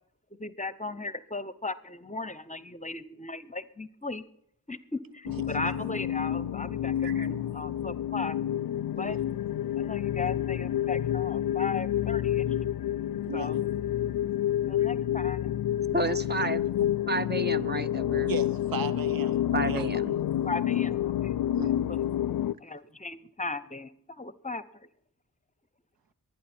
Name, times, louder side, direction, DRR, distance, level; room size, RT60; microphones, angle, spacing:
voice 1, 0.4-4.2 4.7-8.4 9.0-9.2 9.8-12.5 13.3-13.6 14.5-15.5 20.4-21.3 21.7-22.0 22.6-24.6, left 3 dB, 20° left, 0.8 m, -37 dB
sound 1, 5.3-22.5, left 11 dB, 70° left, 0.5 m, -29 dB
voice 2, 13.2-13.6 16.0-16.2 18.3-19.4 19.6-19.9 21.5-21.7, right 6 dB, 75° right, 0.8 m, -37 dB
voice 3, 15.9-16.6 17.1-18.3 19.5-20.5, right 3 dB, 30° right, 0.9 m, -31 dB
23.5 x 9.9 x 4.4 m
cardioid pair, 50°, 36 cm